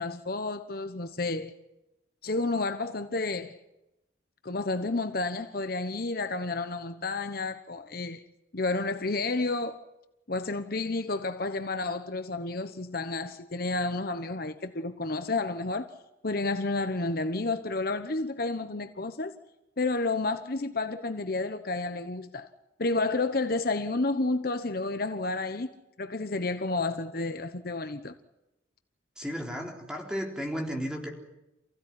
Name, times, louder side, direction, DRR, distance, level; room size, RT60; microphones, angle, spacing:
voice 1, 0.0-1.5 2.2-3.6 4.4-8.2 8.5-9.8 10.3-15.9 16.2-19.3 19.8-22.5 22.8-25.7 26.0-28.1, left 3 dB, 50° left, 1.1 m, -30 dB
voice 2, 29.2-31.1, equal, 5° right, 3.9 m, -34 dB
28.5 x 16.0 x 9.8 m
head